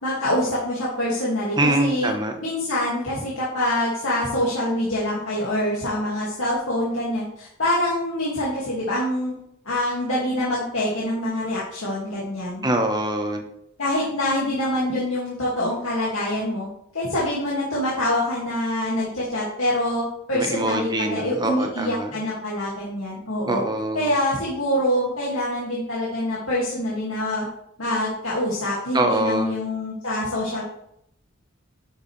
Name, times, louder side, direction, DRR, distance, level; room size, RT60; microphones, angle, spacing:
voice 1, 0.0-2.1 2.4-9.3 9.7-12.7 13.8-16.7 16.9-23.6 23.9-27.5 27.8-30.6, left 1 dB, 75° left, -7 dB, 2.4 m, -25 dB
voice 2, 1.6-2.3 12.6-13.4 20.3-22.1 23.5-24.1 28.9-29.6, right 1 dB, 20° right, 4 dB, 1.2 m, -24 dB
11.0 x 6.5 x 3.4 m, 0.75 s
head